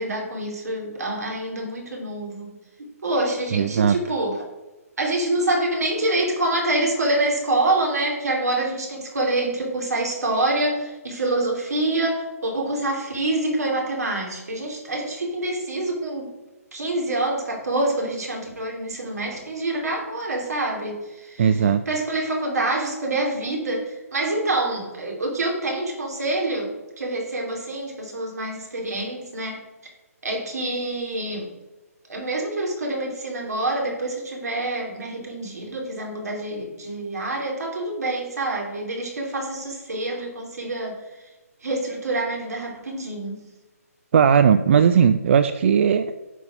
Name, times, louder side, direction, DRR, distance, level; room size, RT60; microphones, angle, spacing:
voice 1, 0.0-4.4 5.0-16.3 16.7-21.5 21.9-29.6 30.2-31.5 32.1-41.0 41.6-43.4, right 2 dB, 80° right, 0 dB, 2.8 m, -26 dB
voice 2, 3.5-4.0 21.4-21.8 44.1-46.1, right 7 dB, 50° right, 11 dB, 0.4 m, -17 dB
9.2 x 4.2 x 5.7 m, 1.1 s
hypercardioid pair, 150°, 9 cm